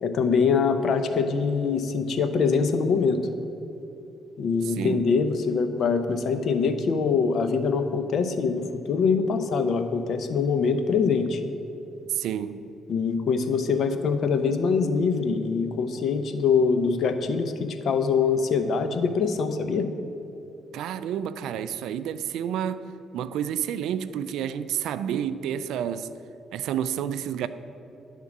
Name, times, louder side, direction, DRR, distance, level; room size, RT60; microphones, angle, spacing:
voice 1, 0.0-3.2 4.4-11.4 12.9-19.9, left 5 dB, 65° left, 8 dB, 0.6 m, -24 dB
voice 2, 4.6-5.0 12.1-12.7 20.7-22.9 23.1-26.1 26.5-27.5, right 9 dB, 85° right, 13 dB, 0.3 m, -29 dB
10.5 x 3.7 x 7.2 m, 2.8 s
cardioid pair, 90°, 0 cm